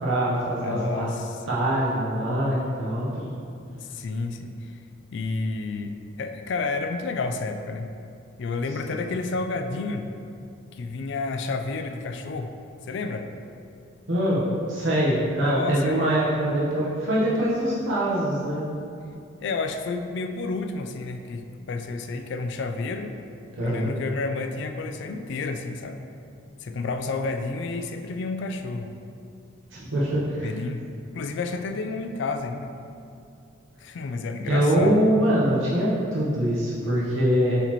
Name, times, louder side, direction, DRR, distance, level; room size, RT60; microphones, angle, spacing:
voice 1, 0.0-1.1 1.5-3.3 8.9-9.0 14.1-14.4 14.7-18.7 23.6-23.9 29.7-30.5 34.4-37.6, right 1 dB, 70° right, -8 dB, 1.0 m, -23 dB
voice 2, 0.6-1.4 3.8-4.8 5.1-7.9 8.4-10.1 10.7-12.5 12.9-13.3 15.4-16.1 19.4-23.1 23.6-26.0 26.6-28.9 30.4-30.8 31.1-32.7 33.8-35.1, left 3 dB, 60° left, 6 dB, 0.3 m, -30 dB
8.0 x 4.1 x 3.0 m, 2.5 s
head